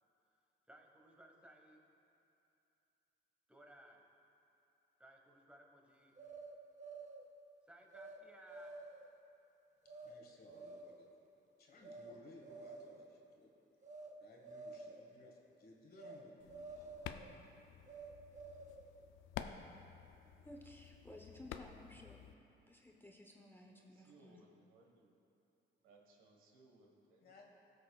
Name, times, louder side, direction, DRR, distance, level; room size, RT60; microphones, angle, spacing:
voice 1, 0.7-1.8 3.5-4.0 5.0-6.1 7.7-8.7, right 1 dB, 5° right, 1 dB, 1.2 m, -60 dB
sound 1, 6.2-7.3 7.9-8.2 8.5-9.1 9.9-10.1 10.5-11.0 11.8-12.1 12.4-13.1 13.8-14.1 14.4-15.0 16.0-16.2 16.5-17.3 17.9-18.9, right 3 dB, 35° right, 0.7 m, -51 dB
voice 2, 9.8-11.1 11.6-13.5 14.2-17.0 27.2-27.5, left 2 dB, 50° left, -1 dB, 1.5 m, -60 dB
sound 2, 16.4-22.3, left 9 dB, 90° left, 0.4 m, -51 dB
voice 3, 20.4-22.2 22.7-24.4, left 1 dB, 10° left, 0 dB, 0.7 m, -56 dB
voice 4, 23.7-25.1 25.8-27.3, right 3 dB, 90° right, 0 dB, 1.3 m, -66 dB
16.5 x 6.5 x 2.3 m, 2.7 s
cardioid pair, 90°, 20 cm